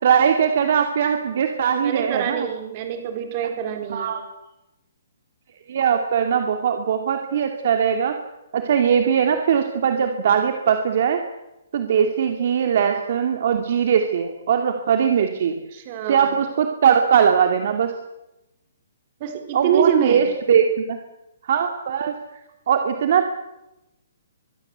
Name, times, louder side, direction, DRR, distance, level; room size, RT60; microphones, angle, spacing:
voice 1, 0.0-2.5 3.9-4.2 5.7-8.2 8.5-11.2 11.7-15.5 16.1-17.9 19.5-21.0 21.5-22.1 22.7-23.4, right 7 dB, 45° right, 5 dB, 2.5 m, -20 dB
voice 2, 1.8-4.1 15.7-16.4 19.2-20.2, right 8 dB, 25° right, 6 dB, 4.4 m, -25 dB
24.0 x 23.0 x 8.2 m, 0.93 s
hypercardioid pair, 175°, 0 cm